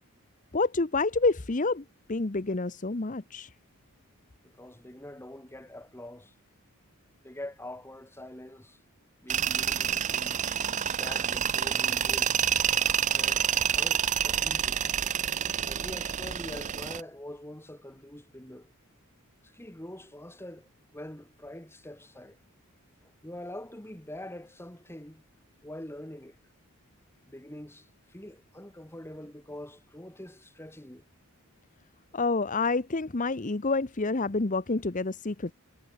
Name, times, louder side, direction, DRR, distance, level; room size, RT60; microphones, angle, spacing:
voice 1, 0.5-1.8 2.1-3.5 32.1-35.5, left 3 dB, 35° left, 0.9 m, -28 dB
voice 2, 4.4-6.3 7.2-8.8 9.2-10.4 10.9-12.3 13.1-14.8 15.5-18.7 19.4-22.4 23.0-25.2 25.6-26.4 27.2-31.1, left 1 dB, 10° left, 2.1 m, -44 dB
Tools, 9.3-17.0, right 9 dB, 35° right, 0.5 m, -28 dB
head